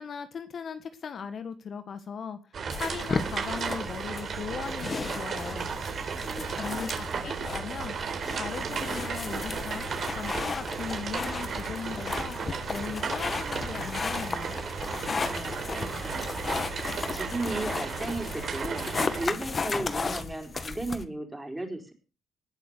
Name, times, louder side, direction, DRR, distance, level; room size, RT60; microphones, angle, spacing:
voice 1, 0.0-2.4 2.7-5.7 6.5-7.9 8.3-14.6, left 6 dB, 55° left, 10 dB, 1.6 m, -38 dB
sound 1, 2.5-19.3, right 6 dB, 55° right, 3.8 m, -34 dB
sound 2, 2.7-21.0, left 4 dB, 35° left, 1.5 m, -35 dB
voice 2, 5.6-7.1 14.8-18.9 19.1-21.9, right 2 dB, 10° right, 4 dB, 4.8 m, -37 dB
19.5 x 7.0 x 6.7 m, 0.34 s
cardioid pair, 90°, 0 cm